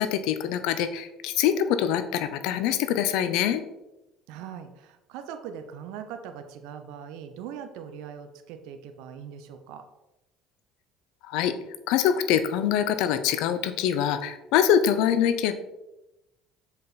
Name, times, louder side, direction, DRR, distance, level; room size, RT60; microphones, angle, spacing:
voice 1, 0.0-3.6 11.3-11.5 11.9-15.5, left 9 dB, 70° left, 11 dB, 0.6 m, -24 dB
voice 2, 4.3-9.8, right 8 dB, 70° right, 7 dB, 0.7 m, -41 dB
6.7 x 5.2 x 4.2 m, 0.96 s
hypercardioid pair, 70°, 0 cm